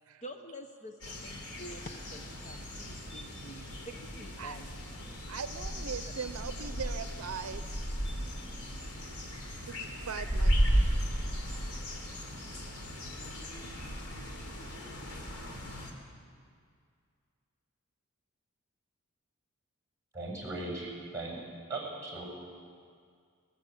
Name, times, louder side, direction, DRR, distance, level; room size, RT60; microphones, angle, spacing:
voice 1, 0.2-4.7, equal, 30° left, 5 dB, 0.9 m, -47 dB
sound 1, 1.0-15.9, equal, 90° left, 3.7 m, -35 dB
voice 2, 5.3-7.7 9.7-11.0, right 6 dB, 75° right, 12 dB, 0.6 m, -40 dB
voice 3, 20.1-21.4 21.7-22.2, right 2 dB, 10° right, -2 dB, 6.9 m, -38 dB
21.0 x 19.5 x 8.4 m, 2.2 s
head